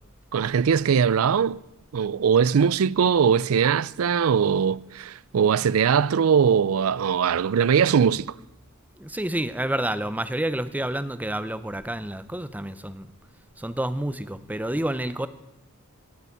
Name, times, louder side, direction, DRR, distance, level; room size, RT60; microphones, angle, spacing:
voice 1, 0.3-1.6 1.9-8.3, right 7 dB, 75° right, 0.4 m, -21 dB
voice 2, 9.0-13.1 13.6-15.3, right 1 dB, 5° right, 0.6 m, -29 dB
18.0 x 6.9 x 9.9 m
head